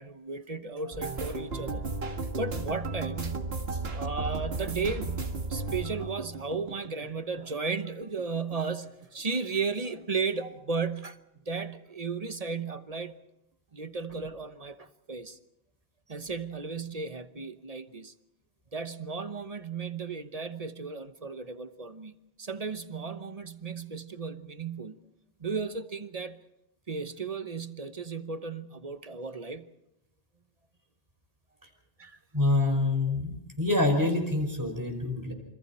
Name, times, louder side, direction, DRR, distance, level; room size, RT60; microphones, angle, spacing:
voice 1, 0.0-1.8 2.4-3.5 3.9-11.2 11.5-13.1 13.7-15.4 16.1-18.1 18.7-25.0 25.4-26.4 26.9-29.7 32.0-32.2 33.1-33.2, right 4 dB, 35° right, 1.0 m, -35 dB
sound 1, 0.9-7.8 8.0-9.1 9.4-9.7 10.0-10.2, right 3 dB, 70° right, 2.1 m, -35 dB
voice 2, 32.3-35.3, left 2 dB, 15° right, 5.3 m, -26 dB
28.0 x 26.0 x 4.3 m
omnidirectional pair, 1.1 m